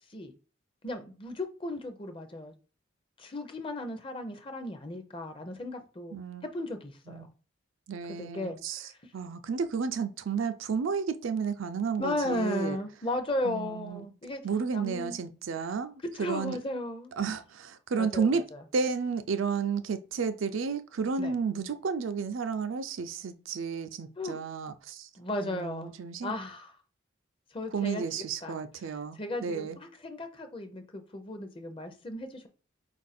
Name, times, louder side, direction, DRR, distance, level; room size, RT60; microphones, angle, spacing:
voice 1, 0.8-2.5 3.2-6.2 6.5-7.3 8.2-9.0 12.0-14.4 14.7-15.2 16.1-17.1 18.0-18.6 21.2-21.3 24.2-24.4 25.1-25.9 26.2-26.7 27.5-28.0 28.4-28.6 29.2-32.5, left 1 dB, 25° left, 0.5 m, -35 dB
voice 2, 6.1-6.5 7.1-7.3 7.9-8.8 9.1-12.8 13.4-14.1 14.4-16.6 17.2-18.4 18.7-25.1 25.4-26.3 27.7-29.8, right 5 dB, 75° right, 0.4 m, -32 dB
4.5 x 2.5 x 4.1 m
head